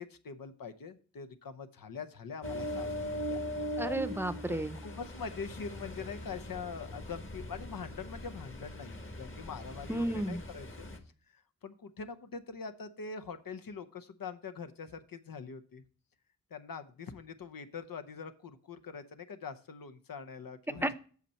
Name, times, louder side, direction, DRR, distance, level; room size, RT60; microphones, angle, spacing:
voice 1, 0.0-3.4 4.5-10.9 11.3-15.8 16.5-20.9, left 5 dB, 85° left, 9 dB, 0.9 m, -44 dB
Ocean, 2.4-11.0, left 1 dB, 35° left, 1.5 m, -40 dB
voice 2, 3.8-4.7 9.9-10.4 20.8-20.9, right 1 dB, 5° right, 13 dB, 0.6 m, -32 dB
8.3 x 6.6 x 4.3 m, 0.41 s
wide cardioid pair, 80°, 33 cm